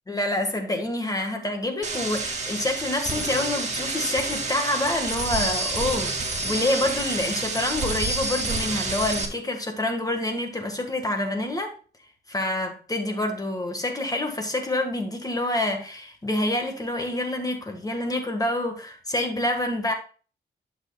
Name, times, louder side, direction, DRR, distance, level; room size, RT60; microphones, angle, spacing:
voice 1, 0.1-11.7 12.3-19.9, left 1 dB, 20° left, 1.6 m, -27 dB
sound 1, 1.8-9.3, right 3 dB, 45° right, 2.1 m, -28 dB
11.5 x 6.3 x 2.3 m
cardioid pair, 100°, 17 cm